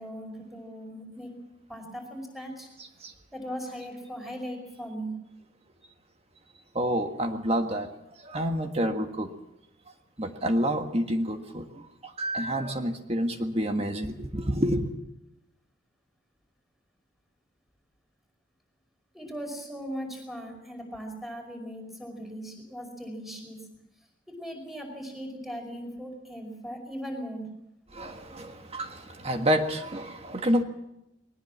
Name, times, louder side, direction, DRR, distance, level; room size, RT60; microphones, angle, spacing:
voice 1, 0.0-1.3 1.7-2.7 3.3-5.2 19.1-23.7 24.3-27.5, equal, ahead, 5.3 m, -38 dB
voice 2, 6.7-7.9 8.2-9.3 10.2-11.7 12.0-14.9 27.9-30.6, equal, 35° right, 1.6 m, -28 dB
21.0 x 19.5 x 7.3 m
head